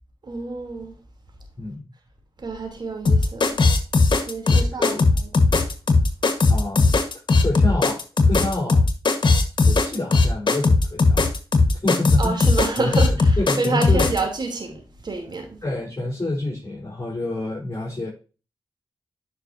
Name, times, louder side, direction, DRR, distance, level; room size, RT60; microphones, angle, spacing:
voice 1, 0.2-0.9 2.4-3.6 4.2-5.3 12.2-15.6, right 3 dB, 55° right, 3.3 m, -28 dB
voice 2, 1.6-1.9 4.5-5.0 6.5-6.9 7.4-8.9 9.7-11.3 11.8-12.4 12.8-13.1 13.4-14.1 15.6-18.1, left 2 dB, 30° left, 4.0 m, -28 dB
sound 1, 3.1-14.2, left 3 dB, 60° left, 1.6 m, -18 dB
9.6 x 5.9 x 2.8 m
cardioid pair, 45°, 9 cm